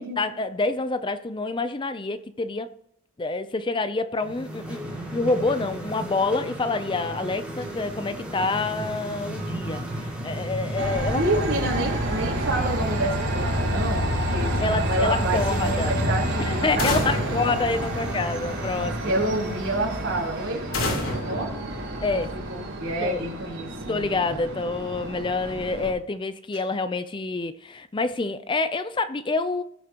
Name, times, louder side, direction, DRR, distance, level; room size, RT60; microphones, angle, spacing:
voice 1, 0.2-2.7 3.2-4.8 5.1-9.9 10.2-11.4 14.6-15.9 16.4-19.1 22.0-22.4 23.0-23.3 23.9-29.6, left 3 dB, 20° left, 0.4 m, -27 dB
sound 1, 4.1-20.8, right 1 dB, 5° right, 2.4 m, -35 dB
Train, 10.8-25.9, right 1 dB, 85° right, 4.3 m, -29 dB
voice 2, 11.1-17.2 19.0-21.5 22.1-24.5, right 1 dB, 65° right, 3.9 m, -29 dB
sound 2, 16.8-18.6 20.7-22.5, left 1 dB, 80° left, 3.5 m, -30 dB
19.5 x 7.0 x 2.9 m
head